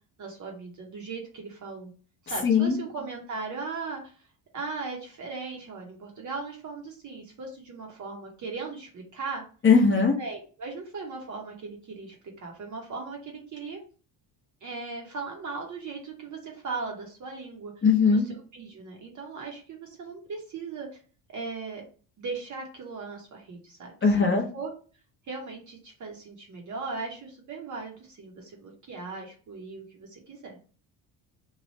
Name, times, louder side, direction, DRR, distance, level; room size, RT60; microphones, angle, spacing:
voice 1, 0.2-1.9 2.2-4.1 4.5-9.4 10.0-13.8 14.6-17.7 18.1-18.2 18.5-21.0 21.3-21.8 22.2-24.3 24.5-24.7 25.3-30.6, right 4 dB, 40° right, 0 dB, 0.8 m, -38 dB
voice 2, 2.4-2.7 9.6-10.1 17.8-18.3 24.0-24.4, left 5 dB, 25° left, 1 dB, 0.8 m, -19 dB
3.1 x 2.3 x 4.0 m, 0.39 s
cardioid pair, 155°, 46 cm